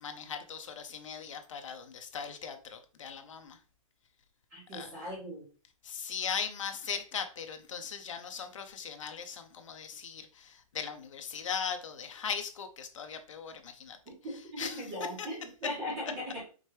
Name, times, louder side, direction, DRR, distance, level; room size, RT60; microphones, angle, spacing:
voice 1, 0.0-3.6 4.7-5.0 5.8-14.0 14.6-14.9 15.2-15.3, left 7 dB, 60° left, 7 dB, 0.8 m, -39 dB
voice 2, 4.5-5.4 14.7-16.4, left 1 dB, 15° right, -8 dB, 1.8 m, -38 dB
5.1 x 3.3 x 3.2 m, 0.38 s
hypercardioid pair, 180°, 18 cm